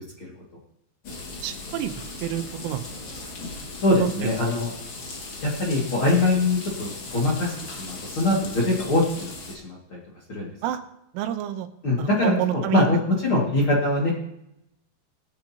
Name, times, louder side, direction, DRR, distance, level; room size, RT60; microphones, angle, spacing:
sound 1, 1.0-9.5, left 3 dB, 85° left, 1.0 m, -38 dB
voice 1, 1.4-1.9 2.2-2.9 4.0-4.5 10.6-10.8 11.2-11.7 12.0-12.9, right 12 dB, 85° right, 8 dB, 3.4 m, -28 dB
voice 2, 3.8-4.7 5.4-10.0 10.3-10.5 11.8-14.1, left 2 dB, 45° left, -4 dB, 1.8 m, -23 dB
20.0 x 9.0 x 2.9 m, 0.82 s
omnidirectional pair, 5.6 m